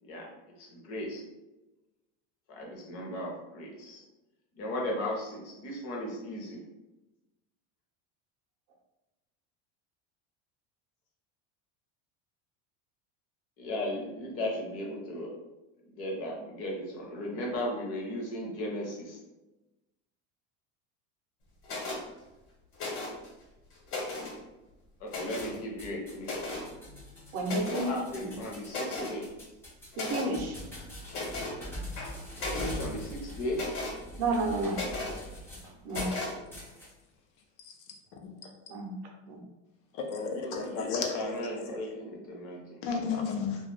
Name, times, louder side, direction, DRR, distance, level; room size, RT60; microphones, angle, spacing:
voice 1, 0.6-1.2 2.5-4.0 4.5-6.6 13.6-15.3 15.9-19.2 25.0-26.3 27.6-29.3 32.5-33.6 40.4-42.8, left 1 dB, 40° left, -1 dB, 0.7 m, -36 dB
sound 1, 21.6-22.0 22.7-23.3 23.7-24.4 25.1-25.6 26.2-26.7 27.4-27.9 28.3-28.4 28.7-29.2 29.9-30.3 31.1-31.6 32.0-32.8 33.5-34.0 34.7-35.2 35.9-36.3, left 2 dB, 65° left, 1.2 m, -36 dB
sound 2, 25.4-36.2 36.5-36.9, left 1 dB, 5° left, 0.4 m, -43 dB
voice 2, 27.3-28.3 30.0-30.6 34.2-34.8 35.8-36.1 38.7-38.9 39.3-39.4, right 2 dB, 45° right, 1 dB, 0.6 m, -31 dB
voice 3, 39.9-41.8 42.8-43.6, left 5 dB, 90° left, 2 dB, 0.7 m, -33 dB
2.3 x 2.2 x 3.1 m, 1.0 s
cardioid pair, 160°, 36 cm